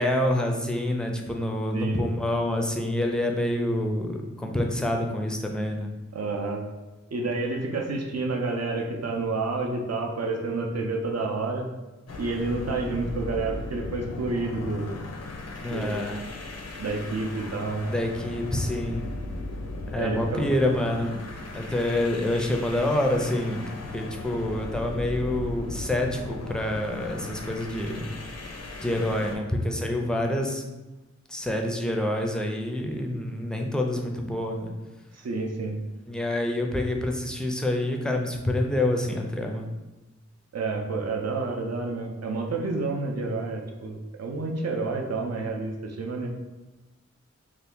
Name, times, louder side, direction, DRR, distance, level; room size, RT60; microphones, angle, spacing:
voice 1, 0.0-5.9 15.6-16.2 17.8-19.0 19.9-21.2 21.5-23.6 23.9-28.2 28.8-30.6 31.3-34.7 36.1-39.7, left 1 dB, 5° left, 2 dB, 0.4 m, -27 dB
voice 2, 6.1-6.7 7.1-11.7 12.2-15.0 15.7-16.1 16.8-17.9 20.0-20.4 35.1-35.8 40.5-46.3, right 3 dB, 60° right, 1 dB, 0.5 m, -29 dB
sound 1, 12.1-29.4, left 2 dB, 60° left, 0.5 m, -37 dB
2.7 x 2.4 x 3.5 m, 1.1 s
wide cardioid pair, 45°, 29 cm